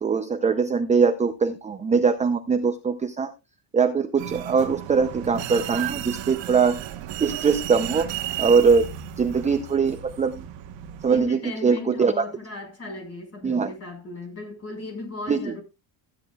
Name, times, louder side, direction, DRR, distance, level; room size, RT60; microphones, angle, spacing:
voice 1, 0.0-3.3 3.7-6.8 7.2-8.1 8.4-8.9 9.2-10.4 11.0-12.2 13.4-13.7 15.3-15.5, right 5 dB, 15° right, 0.5 m, -22 dB
sound 1, 4.2-11.2, right 12 dB, 65° right, 1.3 m, -34 dB
voice 2, 11.1-15.6, left 2 dB, 30° left, 4.9 m, -36 dB
15.0 x 10.0 x 2.3 m
cardioid pair, 175°, 47 cm